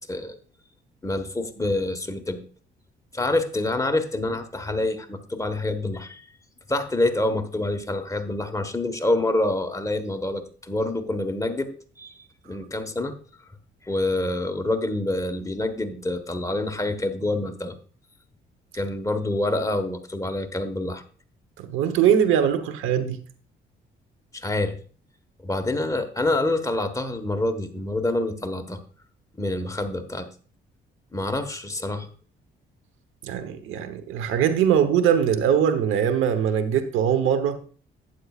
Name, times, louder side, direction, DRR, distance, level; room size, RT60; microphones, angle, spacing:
voice 1, 1.0-2.4 3.1-6.2 6.7-13.1 13.9-17.7 18.7-21.0 24.3-24.8 25.4-28.8 29.3-30.3 31.1-32.1, left 2 dB, 15° left, 1.3 m, -27 dB
voice 2, 21.6-23.2 33.2-37.6, right 8 dB, 90° right, 1.0 m, -21 dB
11.5 x 9.3 x 2.4 m
cardioid pair, 90°, 20 cm